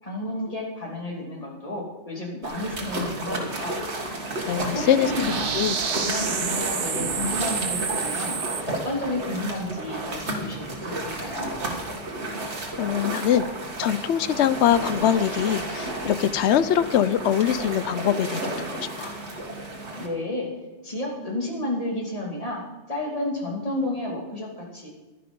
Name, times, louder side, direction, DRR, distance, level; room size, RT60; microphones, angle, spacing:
voice 1, 0.0-3.8 4.5-5.6 6.0-8.4 8.7-11.5 20.0-20.5 20.8-22.6 22.9-24.9, left 1 dB, 30° left, -2 dB, 2.7 m, -31 dB
sound 1, 2.4-20.1, right 2 dB, 70° right, 2.1 m, -32 dB
sound 2, 4.3-8.6, right 7 dB, 55° right, 0.9 m, -30 dB
voice 2, 4.5-5.1 5.5-5.8 12.8-13.5 13.8-19.1, left 10 dB, 75° left, 14 dB, 0.9 m, -23 dB
12.0 x 10.5 x 5.3 m, 1.2 s
omnidirectional pair, 1.2 m